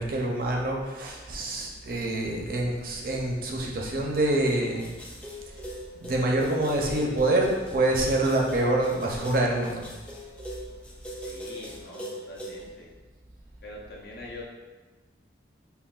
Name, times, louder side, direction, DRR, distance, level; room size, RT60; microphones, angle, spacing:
voice 1, 0.0-4.9 6.0-9.9, right 1 dB, 55° right, -1 dB, 0.6 m, -26 dB
sound 1, 4.4-12.6, equal, 5° left, 0.4 m, -41 dB
voice 2, 11.2-12.9 13.6-14.4, left 1 dB, 60° left, -2 dB, 0.6 m, -44 dB
5.7 x 2.2 x 2.4 m, 1.3 s
head